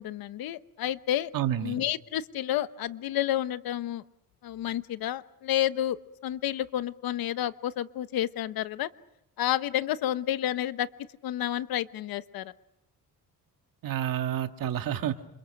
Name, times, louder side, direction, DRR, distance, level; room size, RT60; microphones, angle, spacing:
voice 1, 0.0-1.3 1.6-4.0 4.4-6.0 6.2-8.9 9.4-10.9 11.2-12.5, left 12 dB, 85° left, 13 dB, 1.1 m, -30 dB
voice 2, 1.3-1.8 13.8-15.3, right 11 dB, 70° right, 7 dB, 1.9 m, -29 dB
28.0 x 27.5 x 6.5 m, 0.84 s
cardioid pair, 155°, 35 cm